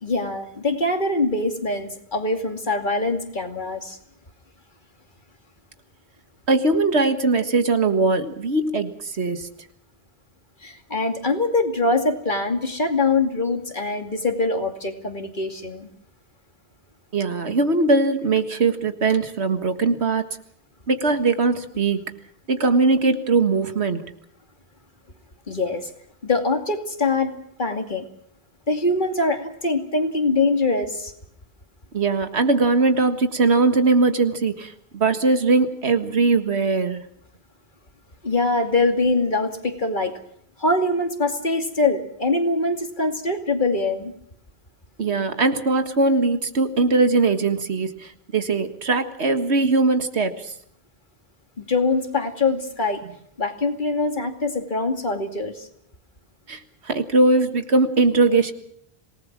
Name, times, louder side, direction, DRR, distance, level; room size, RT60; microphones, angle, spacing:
voice 1, 0.0-4.0 10.6-15.9 25.5-25.9 26.2-27.3 27.6-28.0 28.7-31.1 38.2-40.2 40.6-44.1 51.6-53.0 53.4-55.7, left 2 dB, 50° left, 5 dB, 2.7 m, -23 dB
voice 2, 6.5-9.5 17.1-20.3 20.9-22.1 22.5-24.1 31.9-37.0 45.0-50.5 56.5-58.5, right 3 dB, 90° right, 9 dB, 1.9 m, -20 dB
27.0 x 19.0 x 6.1 m, 0.69 s
omnidirectional pair, 1.1 m